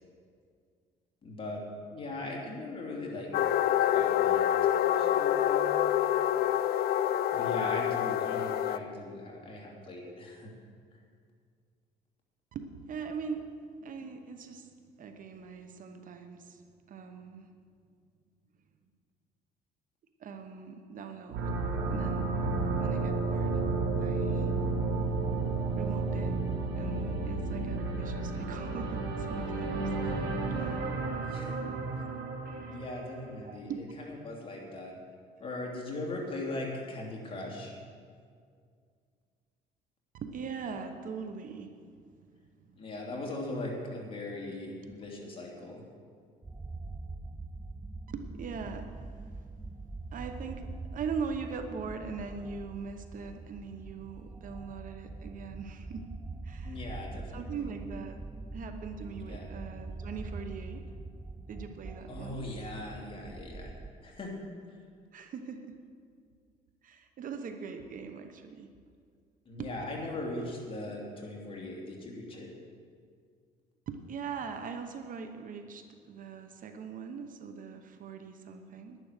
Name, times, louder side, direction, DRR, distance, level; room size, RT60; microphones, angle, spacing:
voice 1, 1.2-3.3 3.8-5.6 7.3-10.5 30.0-30.2 31.3-31.6 31.9-32.0 32.7-34.9 35.4-37.7 42.7-45.8 56.6-57.7 59.3-59.5 62.1-63.7 64.0-64.3 69.4-72.5, left 2 dB, 30° left, -1 dB, 2.9 m, -39 dB
sound 1, 3.3-8.8, left 11 dB, 65° left, 0.5 m, -27 dB
voice 2, 12.5-13.5 13.8-14.7 15.0-17.5 20.2-21.4 21.9-22.3 22.8-23.6 24.0-24.5 25.7-26.4 26.8-29.8 30.7-30.8 31.9-32.2 33.3-33.8 40.1-41.9 42.6-42.8 44.8-44.9 48.1-49.3 50.1-56.1 56.4-56.9 57.3-58.2 58.5-60.8 61.5-62.5 65.1-65.8 66.8-68.7 69.6-69.7 73.9-79.0, right 5 dB, 50° right, 7 dB, 1.0 m, -41 dB
sound 2, 21.3-33.2, right 3 dB, 75° right, 1.9 m, -32 dB
sound 3, 46.4-63.9, right 3 dB, 10° right, 0.4 m, -43 dB
11.0 x 10.5 x 6.7 m, 2.1 s
cardioid pair, 110°, 17 cm